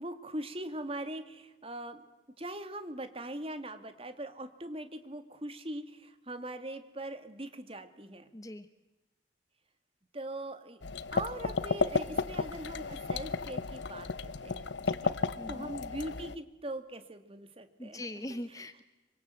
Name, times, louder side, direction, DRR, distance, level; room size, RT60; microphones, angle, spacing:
voice 1, 0.0-2.1 2.4-8.3 10.1-10.8 11.1-18.4, right 1 dB, 30° right, 9 dB, 2.1 m, -41 dB
voice 2, 8.3-8.7 15.4-15.7 17.8-18.8, left 1 dB, 20° left, 11 dB, 0.9 m, -41 dB
sound 1, 10.8-16.3, left 4 dB, 75° left, 0.9 m, -33 dB
26.0 x 25.5 x 7.7 m, 1.1 s
head